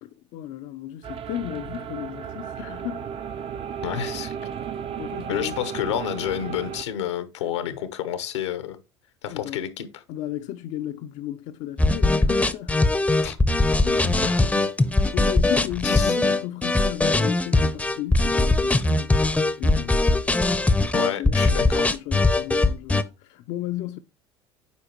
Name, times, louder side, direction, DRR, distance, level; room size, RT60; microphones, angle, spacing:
voice 1, 0.0-3.1 3.8-4.0 5.0-5.6 9.3-9.6 10.1-12.8 13.8-20.0 21.2-24.0, left 13 dB, 55° left, 0.5 m, -35 dB
sound 1, 1.0-6.8, right 8 dB, 40° right, 0.6 m, -34 dB
voice 2, 3.8-4.3 5.3-8.8 9.2-9.9 13.2-13.4 14.2-14.4 15.8-16.1 20.9-21.9, left 10 dB, 80° left, 0.9 m, -29 dB
sound 2, 11.8-23.0, left 2 dB, 10° left, 0.6 m, -21 dB
8.4 x 4.8 x 2.9 m
hypercardioid pair, 70°, 14 cm